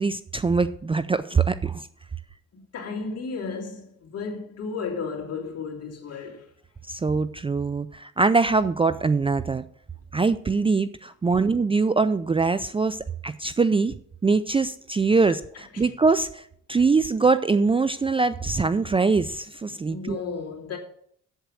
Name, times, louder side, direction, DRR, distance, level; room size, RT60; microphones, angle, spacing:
voice 1, 0.0-1.9 6.9-9.6 10.1-14.0 14.2-20.2, right 4 dB, 20° right, 0.4 m, -23 dB
voice 2, 2.5-6.5 11.3-11.4 15.3-15.9 19.9-20.8, left 5 dB, 55° left, 2.8 m, -34 dB
8.1 x 8.0 x 6.3 m
cardioid pair, 90°, 30 cm